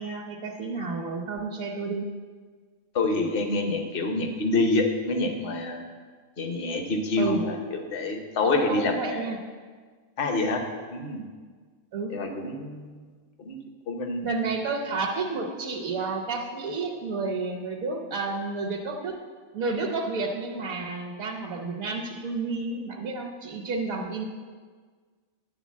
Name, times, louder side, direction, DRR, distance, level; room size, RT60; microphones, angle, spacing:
voice 1, 0.0-2.1 7.2-7.4 8.4-9.4 11.9-12.1 14.2-19.2 19.5-24.2, right 3 dB, 80° right, 0 dB, 1.3 m, -31 dB
voice 2, 2.9-5.8 6.4-9.3 10.2-10.6 10.9-11.2 12.1-13.0 13.4-13.6 13.9-14.5, left 2 dB, 45° left, 4 dB, 1.0 m, -27 dB
10.5 x 3.9 x 7.4 m, 1.5 s
omnidirectional pair, 1.4 m